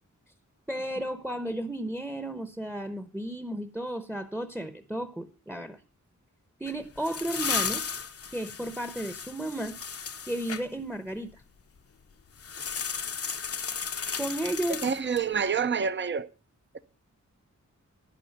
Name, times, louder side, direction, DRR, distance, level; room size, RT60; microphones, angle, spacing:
voice 1, 0.7-5.8 6.6-7.9 8.3-9.8 10.3-11.4 14.2-14.9, right 1 dB, 5° right, 0.9 m, -33 dB
sound 1, 6.7-10.6 12.4-15.3, left 6 dB, 50° left, 0.7 m, -34 dB
voice 2, 14.7-16.3 16.7-16.8, right 6 dB, 40° right, 0.7 m, -28 dB
11.0 x 10.5 x 5.4 m
wide cardioid pair, 105°, 30 cm